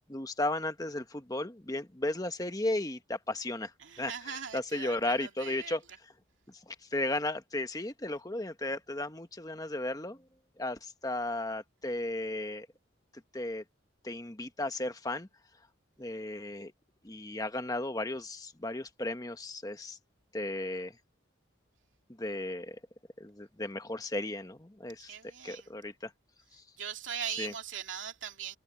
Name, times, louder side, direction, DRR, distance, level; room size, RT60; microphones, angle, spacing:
voice 1, 0.1-3.7 4.0-5.8 6.5-10.2 10.6-12.7 13.3-13.6 14.0-15.3 16.0-16.7 17.0-20.0 20.3-21.0 22.2-22.8 23.2-25.1 25.4-26.1 26.5-26.6 27.4-27.5, left 2 dB, 20° left, 1.1 m, -35 dB
voice 2, 3.8-5.8 25.1-25.7 26.8-28.6, right 8 dB, 70° right, 2.7 m, -40 dB
head